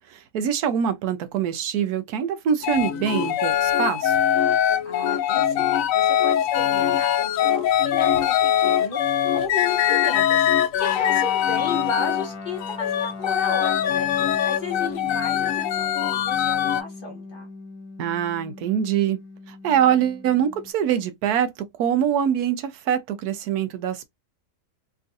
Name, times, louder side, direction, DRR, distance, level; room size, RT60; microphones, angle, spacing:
voice 1, 0.1-4.2 18.0-19.2 19.5-21.5 21.8-24.0, right 9 dB, 90° right, 1.2 m, -24 dB
sound 1, 2.6-12.3 12.6-16.8, left 10 dB, 70° left, 0.9 m, -22 dB
voice 2, 4.8-5.7 5.9-9.0 9.3-14.1 14.4-17.5, left 3 dB, 35° left, 1.4 m, -34 dB
Guitar, 10.8-20.7, left 3 dB, 85° left, 1.2 m, -39 dB
3.6 x 2.4 x 2.6 m
omnidirectional pair, 1.6 m